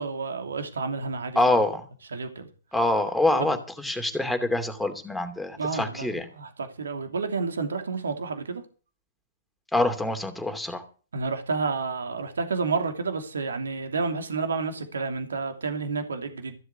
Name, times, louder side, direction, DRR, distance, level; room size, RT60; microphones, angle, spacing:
voice 1, 0.0-1.6 2.1-2.5 3.4-3.5 5.6-8.6 11.1-16.6, right 4 dB, 85° right, 2.8 m, -30 dB
voice 2, 1.4-1.9 2.7-6.2 9.7-10.8, left 2 dB, 5° left, 2.7 m, -25 dB
15.0 x 7.8 x 8.2 m
hypercardioid pair, 120°, 0 cm